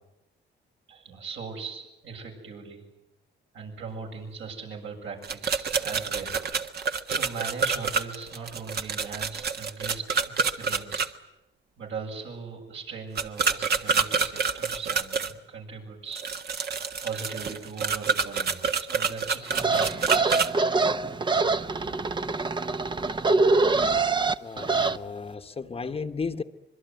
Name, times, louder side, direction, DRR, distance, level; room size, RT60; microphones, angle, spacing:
voice 1, 0.9-2.8 3.5-6.4 7.1-11.0 11.8-16.2 17.0-20.4, right 5 dB, 75° right, 0 dB, 7.7 m, -39 dB
sound 1, 5.2-11.1 13.2-15.3 16.1-20.5, right 5 dB, 55° right, 1.6 m, -27 dB
sound 2, 19.5-25.0, right 3 dB, 25° right, 0.9 m, -24 dB
voice 2, 24.4-26.4, left 4 dB, 30° left, 8 dB, 1.2 m, -34 dB
25.5 x 22.0 x 9.4 m, 0.95 s
cardioid pair, 90°, 20 cm